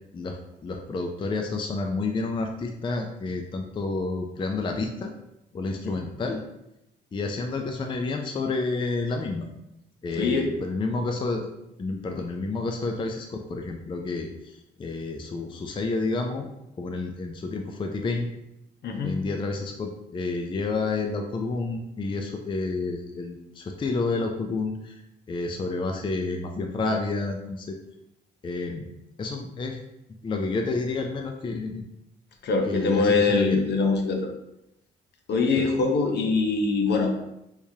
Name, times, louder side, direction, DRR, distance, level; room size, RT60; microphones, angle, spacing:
voice 1, 0.1-5.1 5.5-6.4 7.1-9.5 10.0-11.5 11.8-16.5 16.8-18.3 19.0-25.0 25.3-27.8 28.4-28.9 29.2-29.8 30.2-31.8 32.7-33.6 35.6-35.7, left 3 dB, 25° left, 3 dB, 0.4 m, -30 dB
voice 2, 10.1-10.5 18.8-19.2 32.4-34.3 35.3-37.1, left 4 dB, 60° left, 3 dB, 0.7 m, -23 dB
3.5 x 3.1 x 2.7 m, 0.88 s
cardioid pair, 90°, 20 cm